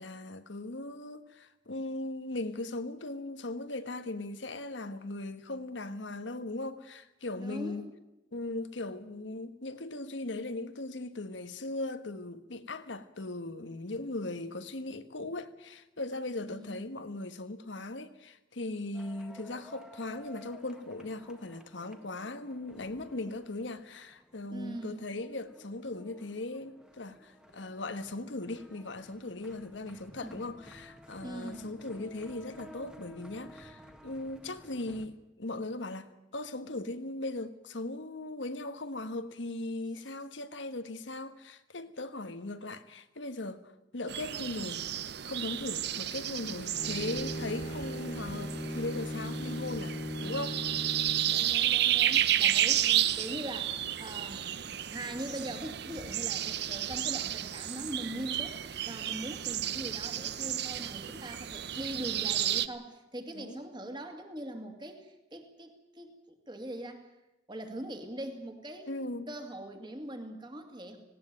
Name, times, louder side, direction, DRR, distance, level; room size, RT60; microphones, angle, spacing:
voice 1, 0.0-7.8 8.3-44.8 45.2-51.0 52.8-53.0 63.3-63.6 68.9-69.3, left 2 dB, 75° left, 1.3 m, -39 dB
voice 2, 7.4-7.9 16.5-16.8 24.5-25.1 30.2-30.4 31.2-31.7 51.2-54.6 54.9-67.1 67.5-68.9 69.3-71.0, right 1 dB, 25° right, 2.4 m, -42 dB
sound 1, 18.9-35.1, equal, 5° right, 1.5 m, -55 dB
sound 2, 44.1-62.7, right 11 dB, 60° right, 0.8 m, -32 dB
Bowed string instrument, 46.8-51.5, equal, 35° left, 1.4 m, -38 dB
18.5 x 17.5 x 9.1 m
head